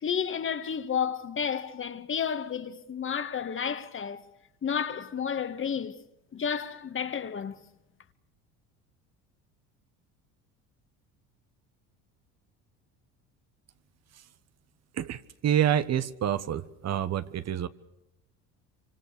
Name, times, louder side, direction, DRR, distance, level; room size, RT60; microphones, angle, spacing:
voice 1, 0.0-4.2 4.6-6.0 6.3-7.6, left 7 dB, 35° left, 1.9 m, -31 dB
voice 2, 14.9-17.7, right 10 dB, 50° right, 1.3 m, -27 dB
26.0 x 24.5 x 6.8 m
supercardioid pair, 85°, 34 cm